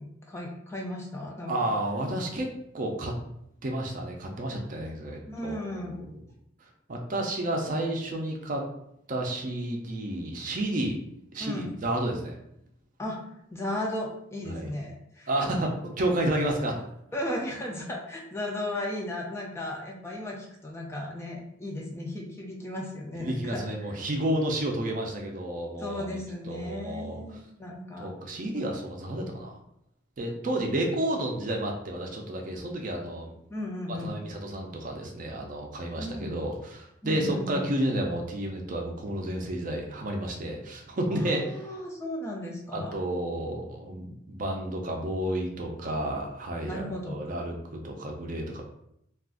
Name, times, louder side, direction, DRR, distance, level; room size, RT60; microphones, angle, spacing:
voice 1, 0.0-1.7 5.3-6.0 11.4-11.7 13.0-13.2 13.5-15.6 17.1-23.7 25.8-28.1 28.5-28.6 30.6-30.7 33.5-34.2 36.0-36.4 37.0-37.8 41.1-42.9 46.7-47.2, left 1 dB, 15° left, -1 dB, 0.4 m, -35 dB
voice 2, 1.5-2.5 2.7-3.1 3.6-6.0 6.9-8.6 9.1-11.0 11.3-12.4 14.5-14.7 15.3-16.8 23.2-27.2 28.0-29.5 30.2-33.3 33.9-41.4 42.7-48.6, right 1 dB, 40° right, 1 dB, 0.5 m, -31 dB
2.4 x 2.4 x 3.6 m, 0.76 s
head